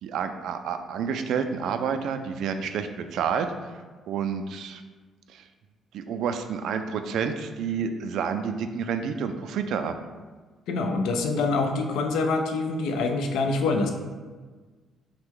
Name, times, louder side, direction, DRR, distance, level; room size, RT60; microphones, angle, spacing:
voice 1, 0.0-3.5 4.1-4.8 5.3-5.4 5.9-9.9, right 6 dB, 70° right, 8 dB, 0.3 m, -29 dB
voice 2, 10.7-13.9, left 3 dB, 85° left, 5 dB, 0.5 m, -25 dB
5.7 x 2.2 x 3.7 m, 1.4 s
cardioid pair, 160°, 0 cm